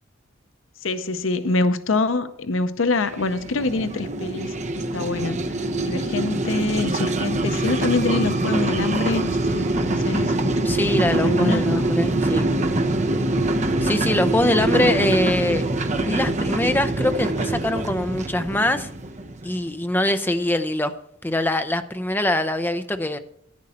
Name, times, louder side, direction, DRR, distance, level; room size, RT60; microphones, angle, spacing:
voice 1, 0.8-5.5 5.8-10.3 11.0-11.8 14.7-15.1, left 3 dB, 80° left, 12 dB, 0.7 m, -25 dB
sound 1, 3.0-19.7, right 2 dB, 35° right, 0.7 m, -24 dB
voice 2, 10.6-12.5 13.8-15.7 16.0-18.9 19.4-20.9 21.2-23.2, left 1 dB, 10° left, 10 dB, 0.6 m, -23 dB
10.5 x 9.8 x 4.2 m, 0.70 s
head